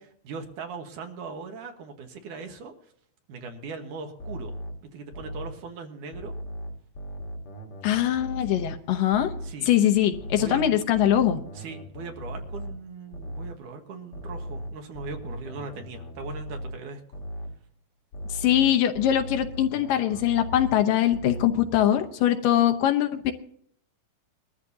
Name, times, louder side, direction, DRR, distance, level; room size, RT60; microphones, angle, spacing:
voice 1, 0.2-2.7 3.3-4.5 4.9-6.3 9.4-9.7 10.4-10.6 11.5-17.0, right 4 dB, 65° right, 4 dB, 2.7 m, -39 dB
sound 1, 4.2-5.6 6.1-8.9 9.1-9.6 10.1-13.6 14.1-16.9 17.1-17.6 18.1-20.9 21.1-21.6, equal, 50° left, 1.9 m, -38 dB
voice 2, 7.8-9.3 9.7-11.4 18.3-23.3, left 11 dB, 75° left, 7 dB, 2.5 m, -22 dB
21.5 x 13.5 x 2.8 m, 0.66 s
omnidirectional pair, 4.1 m